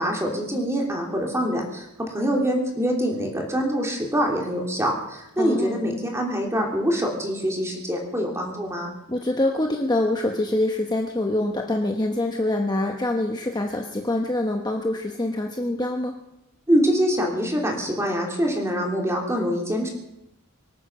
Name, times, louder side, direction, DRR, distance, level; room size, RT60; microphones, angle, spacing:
voice 1, 0.0-8.9 16.7-19.9, equal, 10° right, 0 dB, 3.2 m, -24 dB
voice 2, 5.4-5.8 9.1-16.1, left 1 dB, 20° left, 2 dB, 1.0 m, -25 dB
24.5 x 9.2 x 6.1 m, 0.87 s
head